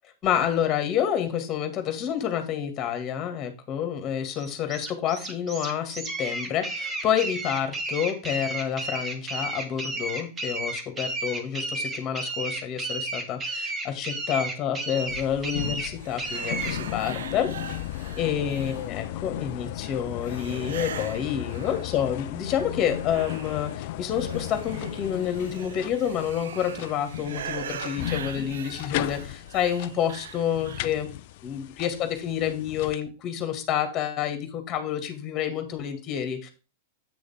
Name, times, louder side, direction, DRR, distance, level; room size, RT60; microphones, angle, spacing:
voice 1, 0.2-17.5 18.1-31.1 31.4-36.5, left 9 dB, 30° left, 7 dB, 2.1 m, -28 dB
sound 1, 4.4-16.8, right 2 dB, 20° right, 2.0 m, -33 dB
sound 2, 15.1-32.9, left 13 dB, 55° left, 0.4 m, -36 dB
sound 3, 16.0-19.2 20.3-22.3 22.6-31.1, right 8 dB, 70° right, 0.8 m, -41 dB
8.4 x 6.3 x 3.6 m, 0.31 s
figure-of-eight pair, 100°, 0 cm